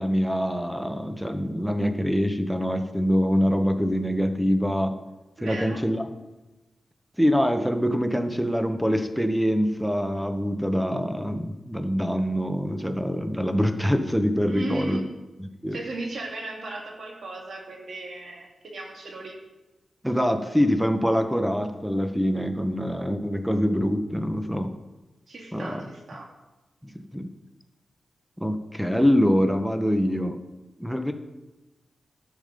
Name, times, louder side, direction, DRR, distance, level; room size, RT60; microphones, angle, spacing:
voice 1, 0.0-5.0 5.4-6.1 7.2-15.0 15.4-15.8 20.0-24.7 25.5-25.8 27.1-27.3 28.4-30.4 30.8-31.1, equal, ahead, 8 dB, 1.1 m, -24 dB
voice 2, 5.4-5.8 14.5-15.1 15.7-19.4 25.3-26.3, right 2 dB, 70° right, 0 dB, 2.4 m, -36 dB
11.5 x 7.2 x 5.3 m, 1.1 s
cardioid pair, 70°, 0 cm